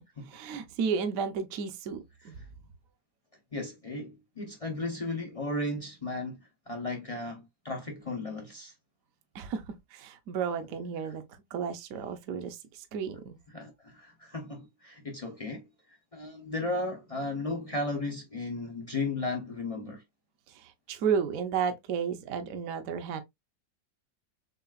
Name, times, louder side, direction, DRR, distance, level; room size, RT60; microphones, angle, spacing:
voice 1, 0.2-2.3 9.3-11.2 11.5-13.4 20.5-23.2, right 6 dB, 60° right, 1.0 m, -33 dB
voice 2, 3.5-6.4 6.7-8.7 13.5-15.7 16.1-20.0, left 2 dB, 70° left, 0.3 m, -35 dB
6.7 x 2.4 x 2.3 m
omnidirectional pair, 1.9 m